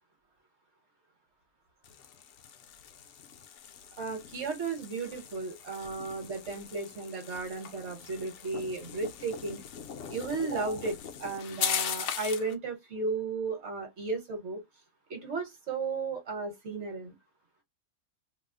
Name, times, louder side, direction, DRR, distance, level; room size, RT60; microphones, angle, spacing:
sound 1, 1.8-12.5, left 8 dB, 65° left, 0.8 m, -40 dB
voice 1, 4.0-9.6 10.1-14.6 15.1-17.1, right 3 dB, 55° right, 1.2 m, -34 dB
2.7 x 2.0 x 3.5 m
omnidirectional pair, 1.5 m